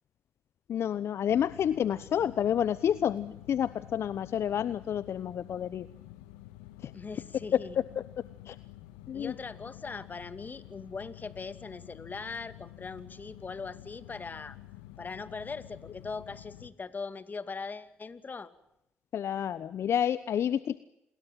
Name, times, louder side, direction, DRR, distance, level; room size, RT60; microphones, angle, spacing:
voice 1, 0.7-5.9 6.8-6.9 7.5-7.6 8.0-8.1 8.5-8.6 9.1-9.3 19.1-20.8, left 9 dB, 65° left, 16 dB, 0.9 m, -29 dB
sound 1, 1.3-16.7, left 15 dB, 90° left, 1.6 m, -50 dB
voice 2, 6.9-7.8 9.1-14.6 15.0-18.5, left 4 dB, 40° left, 12 dB, 2.4 m, -40 dB
28.5 x 21.0 x 7.6 m, 0.84 s
hypercardioid pair, 50°, 5 cm